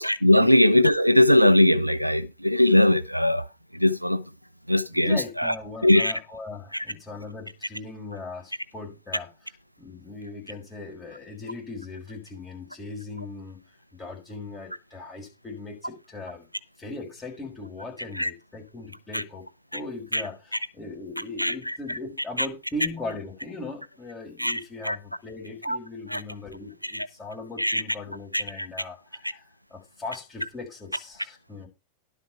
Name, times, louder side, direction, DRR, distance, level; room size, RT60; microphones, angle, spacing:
voice 1, 0.0-3.5 3.7-4.2 4.7-5.5 5.8-6.1 6.7-6.8 18.2-18.3 19.1-19.2 20.1-20.2 21.4-21.7 24.4-25.0 25.6-25.8 26.1-26.2 26.8-27.1 27.6-27.8 28.3-28.7, left 1 dB, 90° right, 0.5 m, -20 dB
voice 2, 4.9-13.6 13.9-16.5 16.8-19.5 19.7-31.7, left 3 dB, 10° left, 5.1 m, -39 dB
11.5 x 6.7 x 4.7 m
figure-of-eight pair, 90°, 0 cm